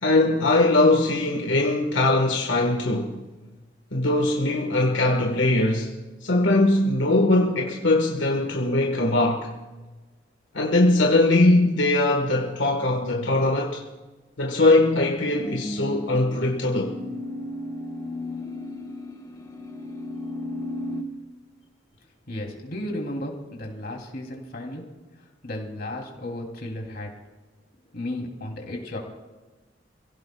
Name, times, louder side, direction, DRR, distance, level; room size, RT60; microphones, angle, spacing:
voice 1, 0.0-3.2 3.9-5.9 6.2-9.5 10.5-13.8 14.4-17.0, left 2 dB, 85° left, 1.5 m, -21 dB
sound 1, 15.4-21.0, left 1 dB, 20° left, 1.2 m, -34 dB
voice 2, 22.3-24.8 25.2-27.1 27.9-29.0, left 1 dB, 55° left, 3.0 m, -34 dB
29.5 x 17.0 x 2.3 m
head